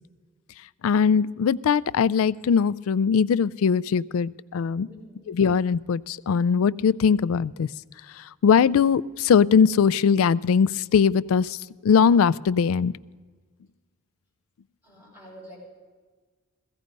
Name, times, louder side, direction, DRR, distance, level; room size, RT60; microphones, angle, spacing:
voice 1, 0.8-4.9 5.3-7.7 8.2-11.6 11.8-12.9, left 6 dB, 70° left, 19 dB, 0.3 m, -21 dB
voice 2, 4.8-5.3 14.8-15.6, equal, 5° right, -6 dB, 6.0 m, -47 dB
16.0 x 15.5 x 5.2 m, 1.4 s
head